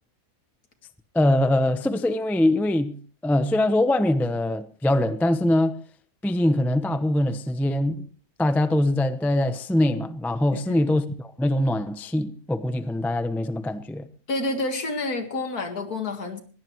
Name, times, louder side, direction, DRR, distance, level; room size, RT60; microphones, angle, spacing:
voice 1, 1.1-3.0 3.2-5.8 6.2-8.1 8.4-14.1, left 1 dB, ahead, 0.4 m, -23 dB
voice 2, 14.3-16.4, left 2 dB, 65° left, 2.4 m, -29 dB
21.5 x 16.5 x 3.1 m
omnidirectional pair, 1.7 m